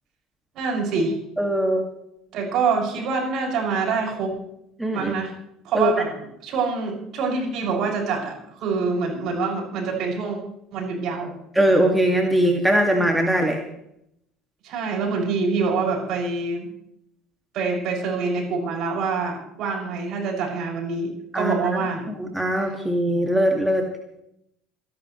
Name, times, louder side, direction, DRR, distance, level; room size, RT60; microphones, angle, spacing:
voice 1, 0.6-1.1 2.3-4.4 4.9-5.3 5.6-6.1 6.4-8.4 8.6-10.4 10.7-11.3 14.6-16.7 17.5-22.1, right 4 dB, 55° right, -2 dB, 6.9 m, -25 dB
voice 2, 1.4-1.8 4.8-5.1 5.7-5.9 11.6-13.6 21.3-21.6 22.2-23.9, right 1 dB, 5° right, 2 dB, 2.3 m, -20 dB
27.5 x 11.5 x 3.3 m, 0.77 s
hypercardioid pair, 65°, 0 cm